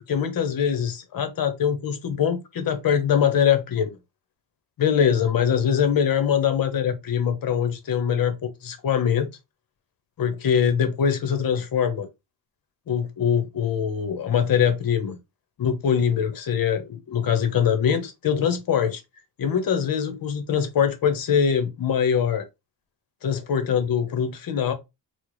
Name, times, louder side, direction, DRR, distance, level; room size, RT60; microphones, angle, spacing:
voice 1, 0.0-3.9 4.8-9.3 10.2-12.1 12.9-15.2 15.6-19.0 19.4-22.5 23.2-24.7, left 8 dB, 50° left, 0.8 m, -23 dB
4.3 x 2.1 x 3.0 m
cardioid pair, 140°, 43 cm